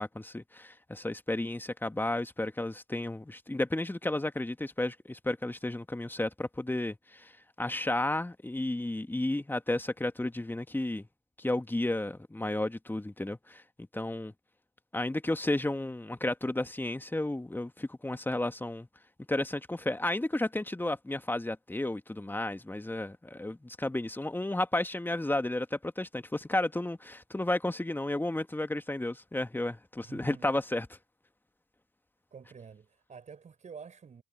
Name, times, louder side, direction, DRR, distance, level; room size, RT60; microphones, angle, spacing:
voice 1, 0.0-7.3 7.6-11.1 11.4-13.6 13.9-14.3 14.9-18.9 19.3-30.9, left 1 dB, 10° left, 2.3 m, -32 dB
voice 2, 30.0-30.5 32.3-34.2, right 6 dB, 40° right, 5.5 m, -48 dB
figure-of-eight pair, 45°, 19 cm